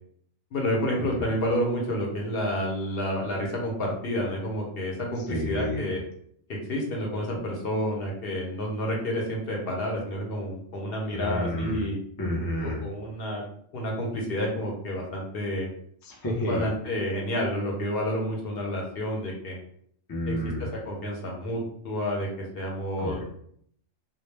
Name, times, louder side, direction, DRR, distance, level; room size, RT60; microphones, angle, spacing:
voice 1, 0.5-6.0 6.5-12.0 12.6-13.4 13.7-15.7 16.5-19.6 20.3-20.4 20.9-23.2, equal, 60° left, 0 dB, 0.8 m, -29 dB
voice 2, 5.3-5.9 11.1-11.9 12.2-12.8 16.0-16.7 20.1-20.7 23.0-23.2, left 1 dB, 35° left, -2 dB, 0.3 m, -30 dB
2.2 x 2.0 x 3.1 m, 0.65 s
omnidirectional pair, 1.2 m